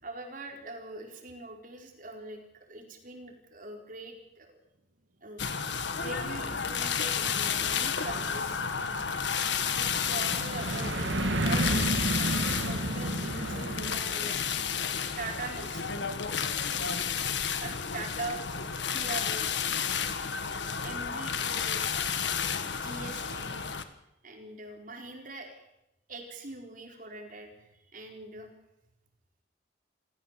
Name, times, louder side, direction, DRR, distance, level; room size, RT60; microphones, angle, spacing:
voice 1, 0.0-4.6 5.2-5.5 5.7-8.6 9.8-14.6 15.2-16.0 17.0-17.1 17.6-18.4 18.9-19.5 20.7-21.9 22.6-23.8 24.2-25.6 26.1-28.5, right 2 dB, 45° right, 3 dB, 4.7 m, -42 dB
sound 1, 5.4-23.8, left 7 dB, 65° left, 1.7 m, -32 dB
sound 2, 7.6-14.0, right 1 dB, 75° right, 1.8 m, -31 dB
27.5 x 16.5 x 7.6 m, 0.88 s
head